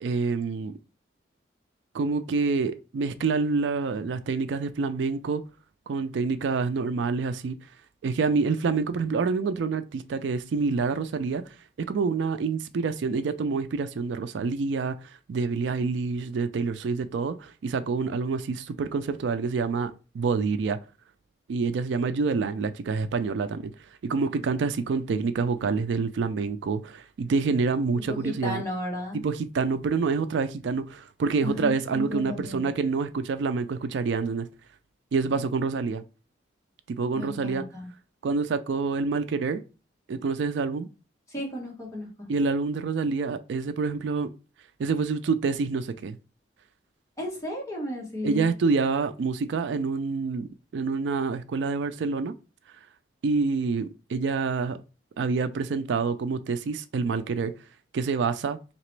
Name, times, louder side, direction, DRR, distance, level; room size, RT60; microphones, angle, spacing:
voice 1, 0.0-0.7 1.9-5.4 5.9-7.6 8.0-11.4 11.8-14.9 15.3-20.8 21.5-23.7 24.0-28.6 29.1-34.5 35.1-36.0 36.9-37.6 38.2-39.6 40.1-40.9 42.3-44.3 44.8-46.2 48.2-50.5 50.7-52.3 53.2-54.8 55.2-57.5 57.9-58.6, right 4 dB, 70° right, 0.3 m, -27 dB
voice 2, 28.1-29.2 31.4-32.7 37.1-37.9 41.3-42.3 47.2-48.5, left 1 dB, 15° left, 1.3 m, -34 dB
4.0 x 2.9 x 3.2 m
head